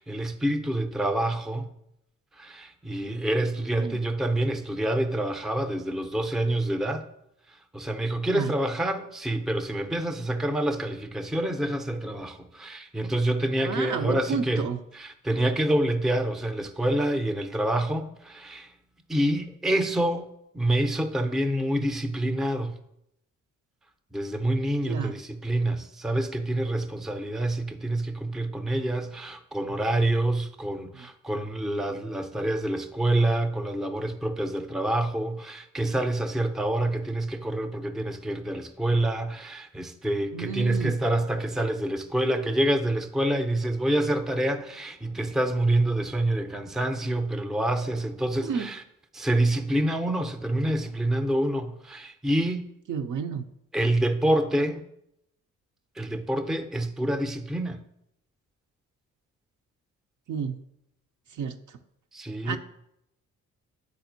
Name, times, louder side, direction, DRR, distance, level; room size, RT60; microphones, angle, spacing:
voice 1, 0.0-1.7 2.4-7.0 7.7-14.6 14.9-18.7 19.1-20.3 20.5-22.8 24.1-48.8 49.1-52.7 53.7-54.8 56.0-57.8 62.1-62.6, right 1 dB, ahead, 0.5 m, -27 dB
voice 2, 13.6-14.8 24.9-25.1 30.9-31.1 40.3-40.9 48.4-48.7 52.9-53.4 60.3-60.6 61.4-61.6 62.4-62.6, right 6 dB, 50° right, 0.6 m, -31 dB
9.4 x 4.1 x 2.6 m
hypercardioid pair, 40°, 40 cm